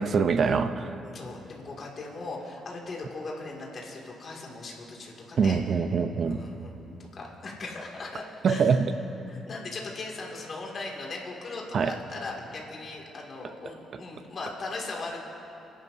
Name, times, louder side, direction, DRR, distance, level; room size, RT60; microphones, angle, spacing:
voice 1, 0.0-0.9 5.4-6.4 8.4-8.9 11.7-11.9, right 5 dB, 55° right, 10 dB, 0.7 m, -24 dB
voice 2, 1.0-5.6 6.2-8.8 9.3-15.2, left 3 dB, 45° left, -2 dB, 2.5 m, -39 dB
28.5 x 11.0 x 2.8 m, 3.0 s
cardioid pair, 90°, 0 cm